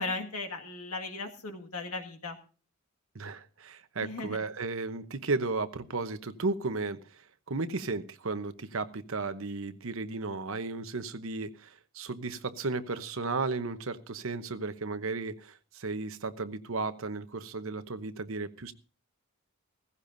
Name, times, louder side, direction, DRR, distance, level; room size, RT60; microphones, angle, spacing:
voice 1, 0.0-2.4 4.0-4.4, left 3 dB, 85° left, 4 dB, 1.9 m, -36 dB
voice 2, 3.1-18.7, right 3 dB, 65° right, 11 dB, 0.9 m, -34 dB
16.5 x 15.5 x 2.6 m, 0.36 s
head